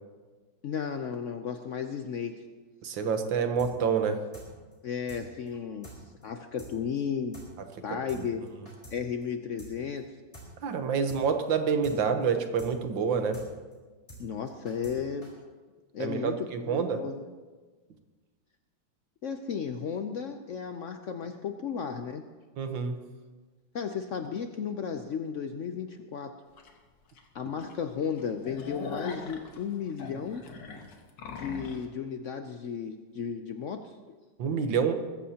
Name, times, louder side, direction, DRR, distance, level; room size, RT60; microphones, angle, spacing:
voice 1, 0.6-2.4 4.8-7.4 7.8-8.5 8.9-10.1 14.2-15.3 15.9-17.2 19.2-22.3 23.7-26.3 27.3-30.4 31.3-34.2, left 7 dB, 90° left, 7 dB, 0.6 m, -34 dB
voice 2, 2.8-4.2 10.6-13.4 16.0-17.0 22.6-23.0 34.4-34.9, right 6 dB, 75° right, 7 dB, 1.8 m, -27 dB
sound 1, 3.6-3.7 4.0-4.1 4.3-4.5 4.7-4.8 5.1-5.2 5.5-5.6 5.8-6.0 6.2-6.3 6.6-6.7 7.0-7.1 7.3-7.5 7.7-7.8 8.1-8.2 8.5-9.0 9.2-9.3 9.6-9.7 10.0-10.1 10.3-10.5 10.7-10.8 11.1-11.2 11.5-11.6 11.8-12.0 12.2-12.3 12.6-12.7 13.0-13.1 13.3-13.5 13.7-13.8 14.1-14.2 14.5-15.0 15.2-15.3, right 1 dB, 15° left, 4.1 m, -47 dB
sound 2, 26.6-26.7 27.2-27.3 27.6-27.7 28.1-31.9, left 4 dB, 70° left, 2.0 m, -41 dB
20.5 x 15.0 x 2.9 m, 1.3 s
omnidirectional pair, 2.1 m